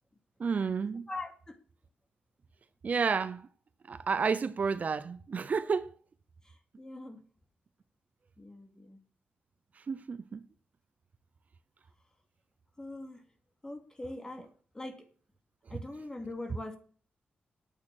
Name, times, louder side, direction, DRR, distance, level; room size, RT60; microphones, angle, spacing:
voice 1, 0.4-1.1 2.8-3.5 3.9-5.9 9.8-10.5, right 5 dB, 50° right, 0.7 m, -31 dB
voice 2, 1.1-1.6 6.4-7.2 8.4-9.0 12.8-13.2 13.6-15.1 15.7-16.8, left 2 dB, 20° left, 2.6 m, -42 dB
9.5 x 8.7 x 6.1 m
cardioid pair, 95°, 3 cm